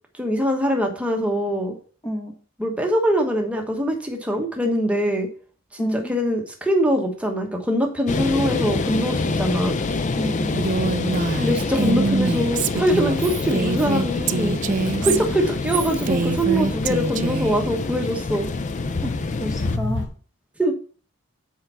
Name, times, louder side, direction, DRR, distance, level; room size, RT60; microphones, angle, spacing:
voice 1, 0.2-1.7 2.6-5.3 5.7-9.7 11.3-14.5 15.0-18.5 20.6-20.7, equal, 5° right, 2 dB, 1.1 m, -23 dB
voice 2, 5.8-6.1 10.1-10.7 15.0-15.3 19.0-20.1, equal, 15° left, 3 dB, 1.2 m, -30 dB
sound 1, 8.1-19.8, left 3 dB, 35° left, 0.4 m, -26 dB
Female speech woman speaking, 10.5-17.6, right 4 dB, 40° right, 0.3 m, -25 dB
sound 2, 12.4-20.1, left 3 dB, 60° left, 1.1 m, -35 dB
6.7 x 4.6 x 5.6 m, 0.41 s
head